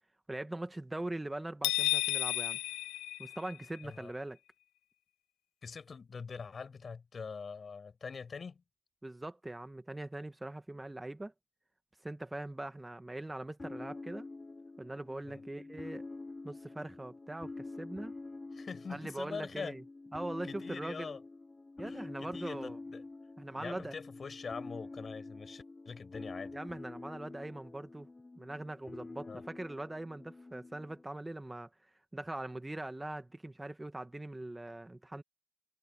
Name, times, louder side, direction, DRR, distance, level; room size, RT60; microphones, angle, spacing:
voice 1, 0.3-2.6 3.2-4.4 9.0-11.3 12.0-14.3 14.8-16.0 16.4-18.1 18.9-19.8 20.1-21.1 21.8-22.8 23.4-23.9 26.5-28.1 28.4-35.2, right 1 dB, 15° right, 1.6 m, -42 dB
sound 1, 1.6-3.8, left 17 dB, 85° left, 0.5 m, -32 dB
voice 2, 5.6-8.6 15.3-15.4 18.5-19.8 20.4-21.2 21.8-23.0 23.6-26.6 29.3-29.4, left 5 dB, 45° left, 5.8 m, -44 dB
sound 2, 13.6-31.0, left 3 dB, 25° left, 2.5 m, -47 dB
supercardioid pair, 60°, 0 cm